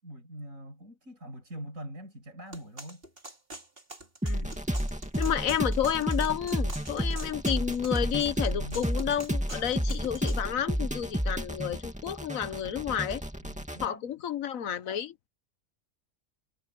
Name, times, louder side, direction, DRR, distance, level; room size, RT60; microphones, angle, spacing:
voice 1, 0.0-3.0 8.5-8.9 13.4-14.1, right 1 dB, 70° right, 7.3 m, -43 dB
sound 1, 2.5-10.4, right 2 dB, 40° right, 3.8 m, -45 dB
sound 2, 4.2-13.9, equal, 5° right, 2.3 m, -31 dB
voice 2, 5.1-13.2 13.8-15.1, left 9 dB, 75° left, 1.3 m, -31 dB
omnidirectional pair, 1.4 m